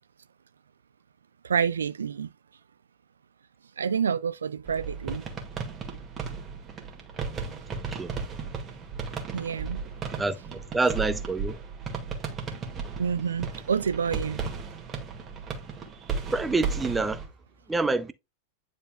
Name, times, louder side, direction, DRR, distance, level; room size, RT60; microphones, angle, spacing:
voice 1, 1.4-2.3 3.8-5.2 9.3-9.8 13.0-14.5, right 7 dB, 70° right, 0.3 m, -28 dB
sound 1, 4.7-17.3, right 5 dB, 25° right, 1.8 m, -35 dB
voice 2, 7.7-8.1 10.2-11.6 16.3-17.2 17.7-18.1, right 3 dB, 10° right, 0.6 m, -27 dB
9.8 x 4.2 x 2.2 m
figure-of-eight pair, 90°, 0 cm